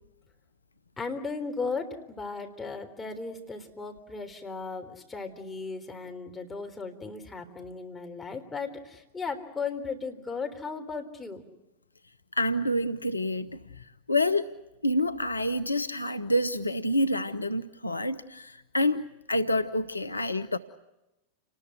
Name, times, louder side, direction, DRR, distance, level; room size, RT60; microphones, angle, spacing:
voice 1, 1.0-11.4, left 4 dB, 10° left, 3 dB, 3.8 m, -36 dB
voice 2, 12.4-13.5 14.1-14.5 14.8-20.6, left 1 dB, 80° left, 13 dB, 0.9 m, -27 dB
29.5 x 20.5 x 8.1 m, 0.94 s
figure-of-eight pair, 90°, 0 cm